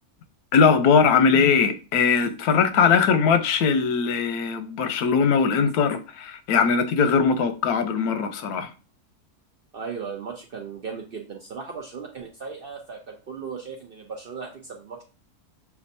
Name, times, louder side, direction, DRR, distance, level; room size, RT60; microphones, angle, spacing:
voice 1, 0.5-8.7, left 6 dB, 85° left, 1.2 m, -20 dB
voice 2, 9.7-15.0, right 5 dB, 55° right, 0.6 m, -37 dB
6.8 x 2.5 x 2.6 m
omnidirectional pair, 1.6 m